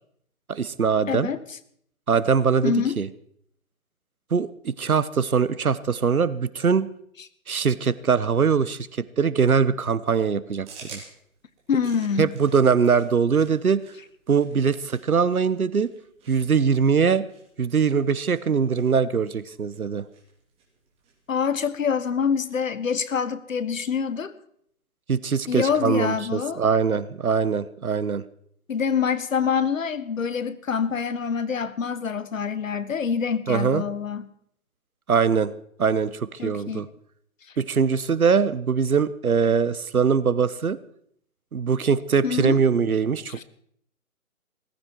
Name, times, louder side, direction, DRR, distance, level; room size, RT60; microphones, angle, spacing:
voice 1, 0.5-1.3 2.1-3.1 4.3-6.9 7.5-8.9 9.2-10.7 10.9-11.0 12.2-13.8 14.3-15.9 16.3-17.2 17.6-20.0 25.1-28.2 33.5-33.8 35.1-35.5 35.8-36.9 37.6-40.8 41.5-43.4, right 6 dB, 80° right, 17 dB, 1.1 m, -22 dB
voice 2, 1.1-1.4 2.6-3.0 11.7-12.3 21.3-24.3 25.5-26.6 28.7-34.3 36.4-36.8 42.2-42.6 43.3-43.4, left 6 dB, 65° left, 15 dB, 1.3 m, -26 dB
sound 1, 10.6-22.7, right 4 dB, 15° right, 3.0 m, -51 dB
18.0 x 15.0 x 4.6 m, 0.68 s
figure-of-eight pair, 145°, 42 cm